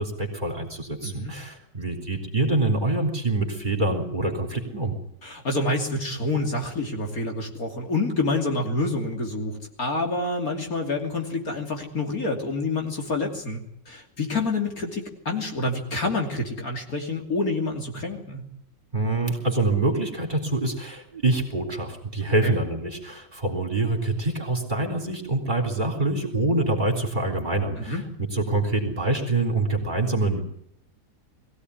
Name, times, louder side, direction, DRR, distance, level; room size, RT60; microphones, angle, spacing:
voice 1, 0.0-5.0 18.9-30.4, right 2 dB, 25° right, 3 dB, 3.9 m, -25 dB
voice 2, 5.2-13.6 13.9-18.4 22.4-22.6 27.8-28.0, left 2 dB, 55° left, 2 dB, 3.4 m, -27 dB
21.5 x 16.5 x 9.8 m, 0.72 s
omnidirectional pair, 1.8 m